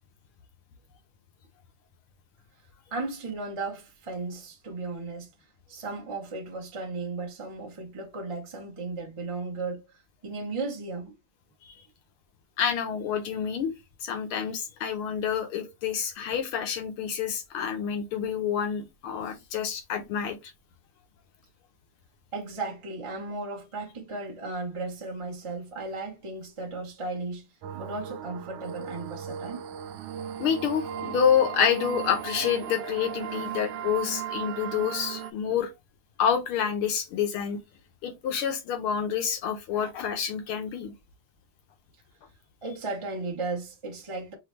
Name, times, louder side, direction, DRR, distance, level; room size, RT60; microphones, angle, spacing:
voice 1, 2.9-5.3 5.7-9.8 10.2-11.1 22.3-27.5 27.7-29.6 42.6-44.3, right 3 dB, 20° right, 0.9 m, -35 dB
voice 2, 12.6-13.7 14.0-20.5 30.4-35.7 36.2-37.6 38.0-40.9, left 8 dB, 85° left, 1.9 m, -28 dB
sound 1, 27.6-35.3, right 9 dB, 80° right, 1.5 m, -36 dB
5.6 x 2.8 x 3.2 m
omnidirectional pair, 2.3 m